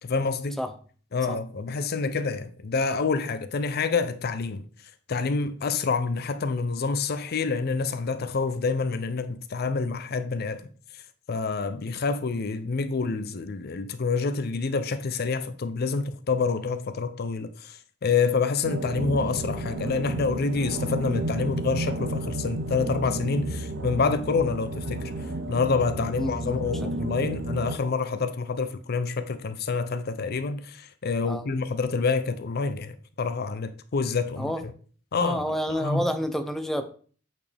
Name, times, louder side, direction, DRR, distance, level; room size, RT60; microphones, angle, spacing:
voice 1, 0.0-0.6 1.1-4.7 5.1-10.6 10.9-11.0 11.3-34.5 35.1-36.0, left 4 dB, 55° left, 0.5 m, -27 dB
sound 1, 18.6-27.8, right 1 dB, 75° right, 0.8 m, -32 dB
voice 2, 26.2-26.6 27.0-27.3 31.2-31.4 34.4-34.6 35.2-36.9, equal, ahead, 0.6 m, -29 dB
8.5 x 4.4 x 3.4 m
head